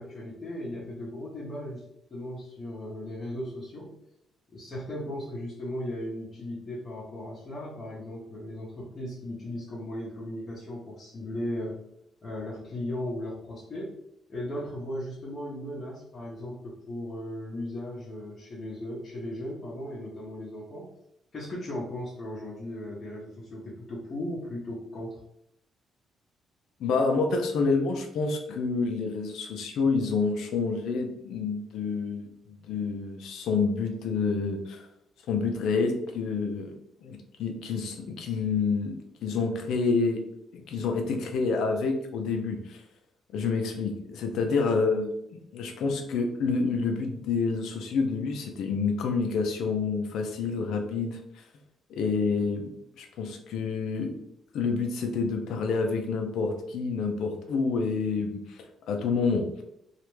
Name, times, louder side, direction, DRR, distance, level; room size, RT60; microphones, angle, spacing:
voice 1, 0.0-1.8 2.1-4.0 4.5-11.8 12.2-14.0 14.3-20.9 21.3-25.2, left 1 dB, 40° left, -7 dB, 0.7 m, -37 dB
voice 2, 26.8-34.8 35.3-36.7 37.0-38.9 39.2-40.2 40.5-42.8 43.3-51.2 51.9-52.7 53.0-54.1 54.5-59.5, left 4 dB, 80° left, 3 dB, 0.4 m, -28 dB
2.4 x 2.1 x 3.1 m, 0.78 s
cardioid pair, 90°, 0 cm